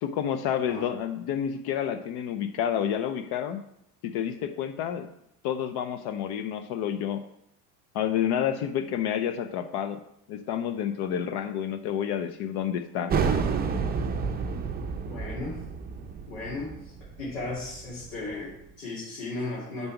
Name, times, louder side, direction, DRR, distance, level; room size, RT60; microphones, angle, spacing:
voice 1, 0.0-3.6 4.0-5.1 5.4-7.2 7.9-10.0 10.3-13.1, left 9 dB, 60° left, 9 dB, 0.6 m, -29 dB
sound 1, 13.1-18.4, right 5 dB, 20° right, 0.5 m, -30 dB
voice 2, 15.0-15.6 16.3-16.8 17.2-19.9, left 2 dB, 85° left, -8 dB, 2.4 m, -35 dB
5.4 x 4.0 x 5.8 m, 0.75 s
supercardioid pair, 100°, 45 cm